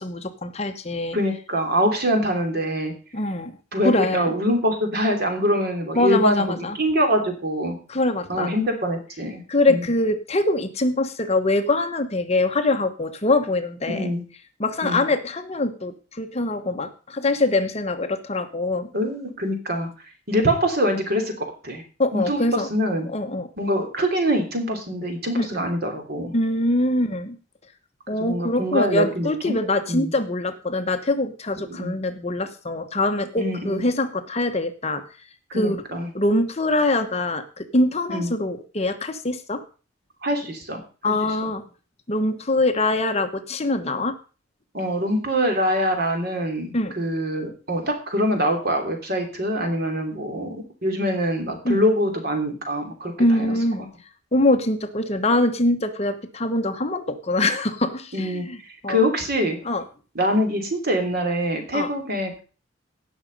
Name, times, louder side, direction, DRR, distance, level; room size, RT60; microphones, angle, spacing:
voice 1, 0.0-1.2 3.1-3.5 3.8-4.3 5.9-6.8 7.9-8.5 9.5-14.1 14.6-18.9 22.0-22.7 23.1-23.5 25.4-25.6 26.3-27.4 28.1-35.0 35.5-35.8 36.1-39.6 41.0-41.6 42.1-44.1 46.7-46.9 51.6-51.8 53.2-53.8 54.3-58.6 58.8-59.0 59.6-59.8 61.7-61.9, left 2 dB, 35° left, 8 dB, 1.0 m, -23 dB
voice 2, 1.1-2.9 3.7-6.4 6.8-7.8 8.3-9.4 9.7-9.8 13.9-14.2 14.8-15.0 18.9-19.9 20.3-21.3 21.6-21.8 22.1-23.1 23.6-26.3 28.2-29.6 29.9-30.1 31.6-31.9 33.4-33.9 35.5-36.1 38.1-38.3 40.2-40.8 41.0-41.1 44.7-53.5 53.8-53.9 58.1-58.4 58.9-59.6 60.1-62.4, equal, 55° right, 4 dB, 3.2 m, -24 dB
17.0 x 6.2 x 5.3 m, 0.37 s
head